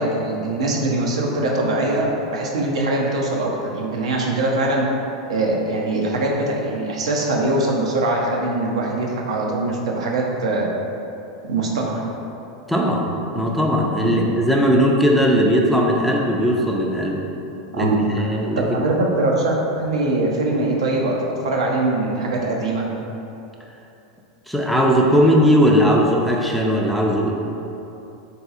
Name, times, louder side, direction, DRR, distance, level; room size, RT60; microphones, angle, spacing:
voice 1, 0.0-4.9 5.3-10.7 11.5-12.0 14.0-14.2 17.7-21.1 21.4-22.9, right 2 dB, 80° right, -1 dB, 0.5 m, -22 dB
voice 2, 12.7-13.1 13.3-17.2 17.8-17.9 18.2-18.7 24.5-27.3, equal, ahead, -2 dB, 0.4 m, -18 dB
3.8 x 2.8 x 2.4 m, 2.8 s
hypercardioid pair, 105°, 3 cm